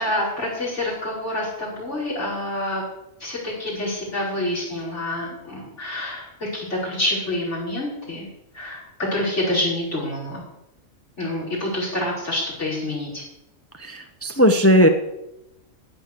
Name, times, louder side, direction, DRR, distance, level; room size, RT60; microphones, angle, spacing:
voice 1, 0.0-2.8 3.2-8.3 8.5-8.8 9.1-10.4 11.2-13.2, left 1 dB, 55° left, -6 dB, 5.6 m, -27 dB
voice 2, 13.8-14.9, equal, 15° left, 6 dB, 0.7 m, -17 dB
15.0 x 5.2 x 8.4 m, 0.86 s
omnidirectional pair, 1.5 m